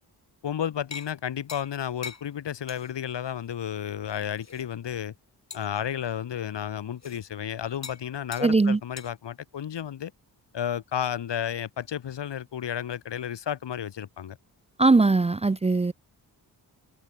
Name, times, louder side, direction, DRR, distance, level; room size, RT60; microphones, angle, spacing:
voice 1, 0.4-5.1 5.5-10.1 10.5-14.4, left 9 dB, 90° left, 3.2 m, -32 dB
sound 1, 0.9-1.1 1.5-1.8 2.0-2.2 2.7-2.9 3.3-3.4 4.1-4.6 5.5-5.8 7.0-7.2 7.8-8.0 8.3-8.5 9.0-9.1, left 5 dB, 40° left, 2.1 m, -41 dB
voice 2, 8.4-8.8 14.8-15.9, right 3 dB, 15° right, 0.5 m, -20 dB
cardioid pair, 85°, 41 cm